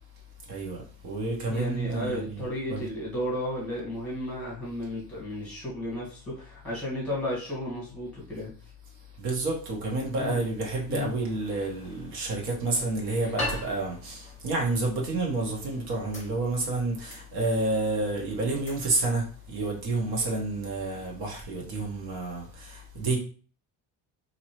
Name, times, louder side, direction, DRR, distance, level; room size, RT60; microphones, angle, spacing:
voice 1, 0.5-2.8 9.2-23.2, right 2 dB, 85° right, 1.2 m, -29 dB
voice 2, 1.5-8.5 10.2-10.4 10.9-11.1, left 1 dB, 5° left, 1.5 m, -33 dB
sound 1, 11.1-21.3, left 1 dB, 20° left, 1.1 m, -43 dB
2.8 x 2.8 x 2.9 m
cardioid pair, 175°, 37 cm